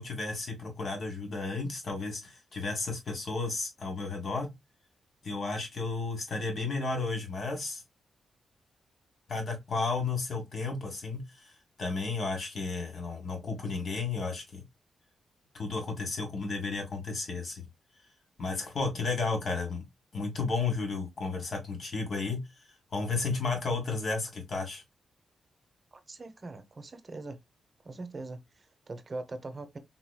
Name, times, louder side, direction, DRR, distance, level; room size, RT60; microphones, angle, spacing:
voice 1, 0.0-4.5 5.2-7.8 9.3-14.6 15.5-17.7 18.4-19.8 20.1-22.4 22.9-24.8, left 3 dB, 55° left, 1.6 m, -33 dB
voice 2, 25.9-27.4 27.8-29.8, right 2 dB, 35° right, 0.8 m, -42 dB
4.0 x 3.0 x 2.2 m
cardioid pair, 100°, 0 cm